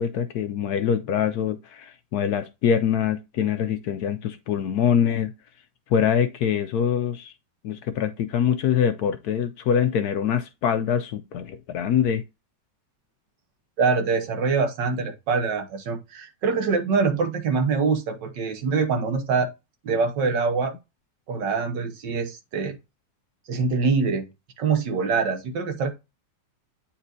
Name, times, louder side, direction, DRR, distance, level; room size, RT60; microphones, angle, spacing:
voice 1, 0.0-5.3 5.9-7.3 7.6-12.2, left 8 dB, 70° left, 1.0 m, -24 dB
voice 2, 13.8-19.5 19.8-20.7 21.3-22.8 23.5-24.3 24.6-25.9, right 5 dB, 75° right, 1.8 m, -24 dB
8.8 x 4.2 x 2.6 m
omnidirectional pair, 2.0 m